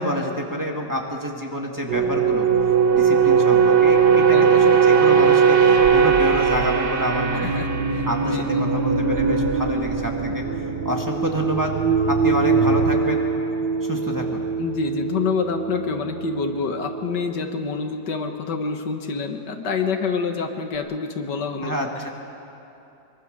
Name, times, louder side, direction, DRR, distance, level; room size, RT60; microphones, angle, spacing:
voice 1, 0.0-2.5 2.9-7.6 8.1-10.4 10.8-11.8 12.1-13.2 13.8-14.4 21.6-22.1, equal, 10° right, 0 dB, 1.9 m, -28 dB
sound 1, 1.9-16.5 16.8-17.1, right 5 dB, 90° right, 2.0 m, -20 dB
voice 2, 4.3-4.6 7.3-8.6 14.6-21.7, left 5 dB, 85° left, 5 dB, 2.1 m, -27 dB
23.5 x 23.0 x 6.7 m, 2.8 s
omnidirectional pair, 1.8 m